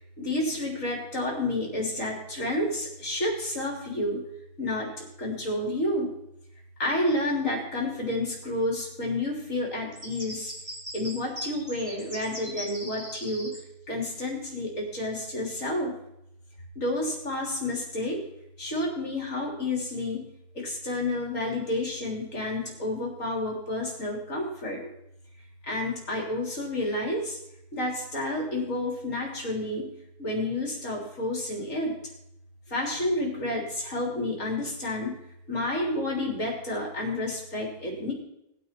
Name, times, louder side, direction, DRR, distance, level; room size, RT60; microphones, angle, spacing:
voice 1, 0.2-4.2 4.6-6.1 6.8-10.5 10.9-13.5 13.9-15.9 16.8-18.2 18.6-20.2 20.5-24.9 25.6-27.4 27.7-29.9 30.2-31.9 32.7-35.2 35.5-38.1, left 1 dB, 35° left, -1 dB, 3.9 m, -30 dB
sound 1, 9.9-13.6, equal, 10° right, 3.5 m, -39 dB
19.0 x 9.5 x 4.6 m, 0.83 s
omnidirectional pair, 2.3 m